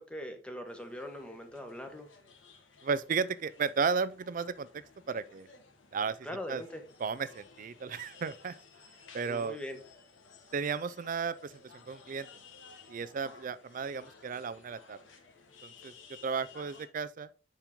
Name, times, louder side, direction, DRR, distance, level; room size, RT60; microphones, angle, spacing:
voice 1, 0.0-2.1 6.2-6.8 9.3-9.8, equal, 5° left, 1.1 m, -41 dB
sound 1, 0.7-16.9, left 4 dB, 80° left, 1.5 m, -56 dB
voice 2, 2.8-4.7 5.1-5.5 5.9-6.2 6.5-6.6 7.0-8.6 9.1-9.6 10.5-11.5 11.9-12.3 12.9-15.0 15.6-15.9 16.2-17.3, right 5 dB, 45° right, 0.4 m, -34 dB
7.3 x 5.4 x 3.6 m
head